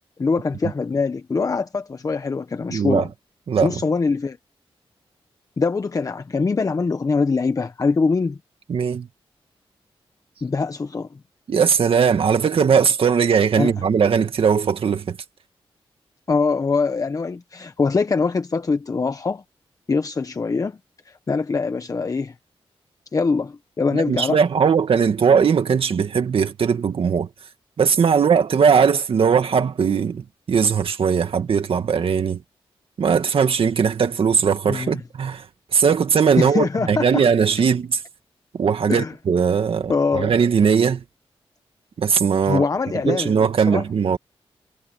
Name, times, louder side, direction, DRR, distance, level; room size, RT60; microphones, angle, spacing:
voice 1, 0.2-3.1 3.6-4.4 5.6-8.4 10.4-11.2 13.6-13.7 16.3-19.4 19.9-20.8 21.0-22.3 23.1-24.4 34.6-35.0 36.4-37.2 38.9-39.1 39.9-40.3 42.4-43.8, left 4 dB, 35° left, 0.9 m, -23 dB
voice 2, 2.7-3.1 3.5-3.7 8.7-9.1 11.5-15.2 23.9-27.3 27.8-32.4 33.0-35.4 35.7-38.0 38.6-41.0 42.0-42.7 43.1-44.2, right 6 dB, 65° right, 2.1 m, -19 dB
wide cardioid pair, 110°, 10 cm